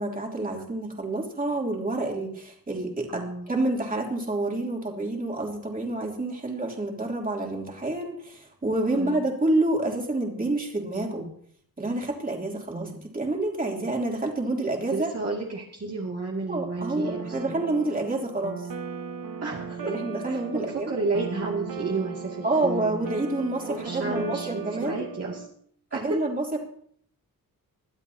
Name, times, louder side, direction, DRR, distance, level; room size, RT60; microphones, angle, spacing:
voice 1, 0.0-11.3 11.8-15.1 16.5-18.7 19.8-21.0 22.4-25.0 25.9-26.6, right 2 dB, 25° right, -1 dB, 3.1 m, -28 dB
voice 2, 3.1-3.5 8.9-9.2 12.7-13.1 14.9-17.6 19.4-19.9 20.3-23.2 23.7-25.4 25.9-26.2, right 3 dB, 45° right, -3 dB, 2.4 m, -32 dB
sound 1, 16.8-25.5, right 6 dB, 70° right, 1.4 m, -37 dB
22.0 x 12.5 x 2.8 m, 0.62 s
wide cardioid pair, 145°, 35 cm